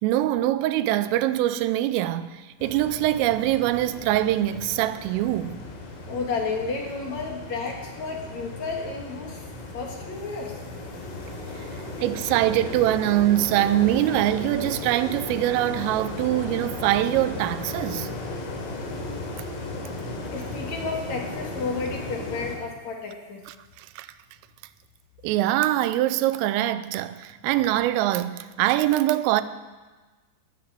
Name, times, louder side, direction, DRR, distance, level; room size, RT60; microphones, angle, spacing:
voice 1, 0.0-5.6 12.0-18.1 23.8-24.1 25.2-29.4, right 14 dB, 90° right, 3.3 m, -23 dB
sound 1, 2.6-22.6, left 2 dB, 80° left, 5.1 m, -36 dB
voice 2, 6.0-9.5 9.7-10.6 18.0-18.2 20.3-23.4, left 4 dB, 60° left, 1.9 m, -32 dB
18.5 x 9.0 x 7.6 m
omnidirectional pair, 5.7 m